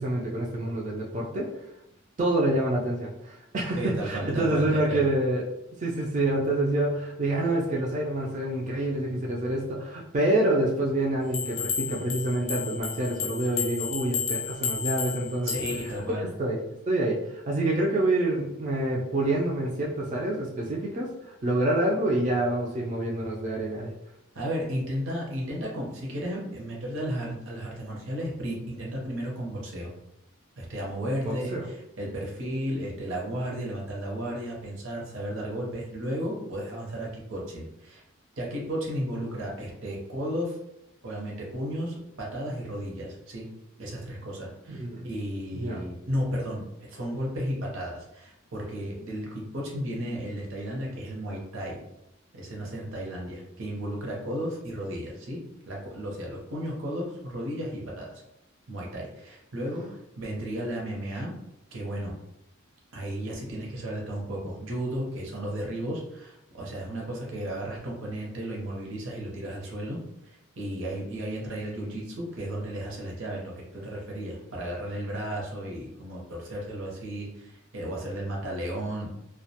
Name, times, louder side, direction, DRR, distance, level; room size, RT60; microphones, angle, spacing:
voice 1, 0.0-1.5 2.2-5.4 5.8-15.5 16.0-17.2 17.5-21.1 21.4-23.9 31.2-31.7 44.7-45.1 45.5-45.8, right 1 dB, 35° right, -3 dB, 0.3 m, -27 dB
voice 2, 3.7-5.1 15.4-16.3 24.3-30.0 30.6-38.0 38.4-40.6 41.0-43.5 43.8-51.8 52.3-55.4 55.7-58.1 58.7-59.9 60.2-61.3 61.7-62.1 62.9-70.0 70.6-79.2, equal, 70° right, -2 dB, 0.7 m, -34 dB
sound 1, 11.3-16.0, left 6 dB, 70° left, 0.5 m, -32 dB
2.3 x 2.1 x 2.7 m, 0.87 s
head